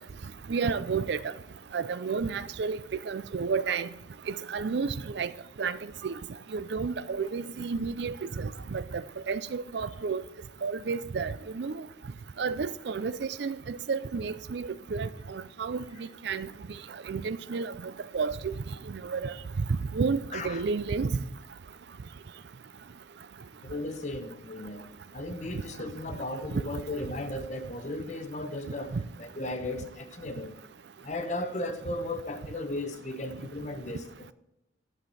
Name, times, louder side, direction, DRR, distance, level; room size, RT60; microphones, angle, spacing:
voice 1, 0.5-1.3 1.7-2.8 3.1-3.9 4.3-5.3 5.6-5.8 6.0-6.2 6.5-10.2 10.6-11.8 12.4-16.5 17.1-18.5 18.9-19.3 19.7-21.2 26.5-26.6 28.9-29.0, right 5 dB, 60° right, 0.4 m, -31 dB
voice 2, 20.3-20.6 23.6-24.9 25.1-30.6 31.0-34.3, left 2 dB, 40° left, 0.8 m, -36 dB
11.5 x 7.7 x 4.0 m
head